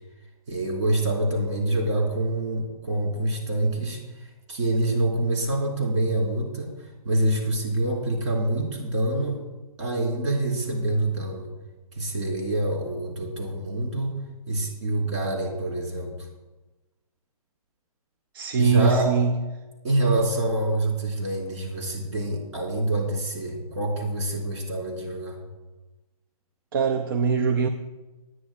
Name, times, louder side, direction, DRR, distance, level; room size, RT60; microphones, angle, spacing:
voice 1, 0.5-4.0 4.5-6.8 7.0-9.4 9.8-11.5 11.9-14.2 14.5-16.1 18.6-19.1 19.8-25.4, right 1 dB, 50° right, 0 dB, 4.0 m, -26 dB
voice 2, 18.3-19.4 26.7-27.7, right 6 dB, 35° right, 8 dB, 0.5 m, -22 dB
20.0 x 10.0 x 2.3 m, 1.1 s
hypercardioid pair, 155°, 19 cm